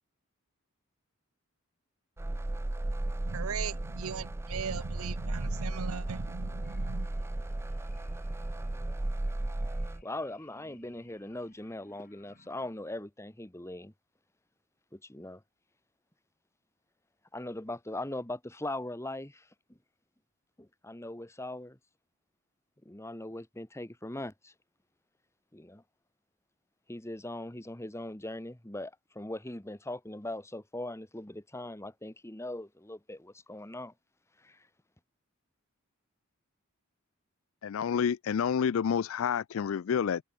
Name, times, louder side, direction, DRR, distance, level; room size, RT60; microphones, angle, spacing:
sound 1, 2.2-10.0, right 1 dB, 10° right, 0.3 m, -35 dB
voice 1, 3.2-7.1, right 6 dB, 80° right, 0.6 m, -38 dB
sound 2, 5.4-12.7, left 2 dB, 45° left, 7.5 m, -62 dB
voice 2, 10.0-13.9 14.9-15.4 17.3-19.5 20.6-21.8 22.8-24.5 25.5-25.8 26.9-33.9 34.4-34.7, left 1 dB, 15° left, 1.3 m, -40 dB
voice 3, 37.6-40.2, left 7 dB, 70° left, 0.4 m, -29 dB
head